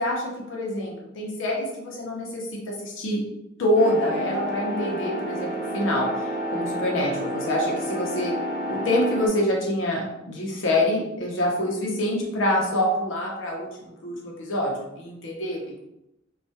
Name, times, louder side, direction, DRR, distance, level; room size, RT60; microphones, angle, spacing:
voice 1, 0.0-3.2 3.6-8.3 8.7-15.8, left 1 dB, 70° left, -1 dB, 0.6 m, -26 dB
sound 1, 3.8-9.3, equal, ahead, 0.7 m, -30 dB
2.3 x 2.2 x 2.7 m, 0.85 s
head